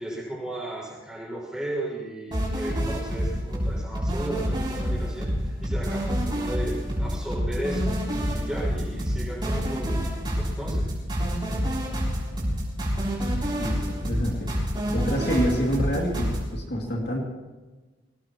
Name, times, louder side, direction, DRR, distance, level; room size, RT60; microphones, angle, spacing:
voice 1, 0.0-7.9 8.2-10.9, right 1 dB, 5° right, -6 dB, 6.2 m, -35 dB
sound 1, 2.3-16.4, equal, 25° right, 6.6 m, -27 dB
voice 2, 13.6-14.5 14.9-17.2, equal, 55° left, -1 dB, 2.6 m, -27 dB
25.0 x 18.5 x 3.1 m, 1.3 s
head